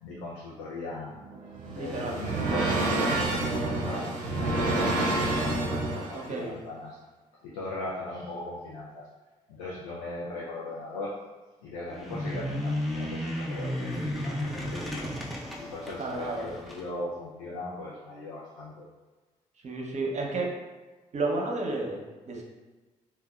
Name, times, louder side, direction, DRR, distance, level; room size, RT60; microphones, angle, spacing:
voice 1, 0.0-1.1 1.6-7.0 7.4-9.0 9.5-11.1 11.6-15.2 15.6-18.9, left 2 dB, 85° left, -6 dB, 0.4 m, -39 dB
sound 1, 1.2-6.3, right 2 dB, 90° right, 0.4 m, -28 dB
voice 2, 1.8-2.2 6.1-6.6 16.0-16.5 19.6-20.5 21.1-22.4, right 2 dB, 45° right, -1 dB, 0.6 m, -32 dB
sound 2, 11.9-16.8, left 1 dB, ahead, 0.6 m, -33 dB
2.7 x 2.1 x 2.2 m, 1.2 s
hypercardioid pair, 45°, 17 cm